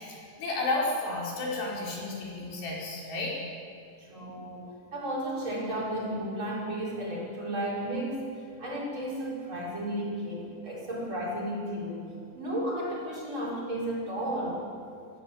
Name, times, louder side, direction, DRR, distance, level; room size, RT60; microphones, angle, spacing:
voice 1, 0.0-3.4, left 2 dB, 85° left, -4 dB, 7.1 m, -32 dB
voice 2, 4.0-8.3 8.6-12.0 12.3-14.6, right 1 dB, 30° right, -4 dB, 5.8 m, -33 dB
29.5 x 14.5 x 8.6 m, 2.4 s
omnidirectional pair, 4.7 m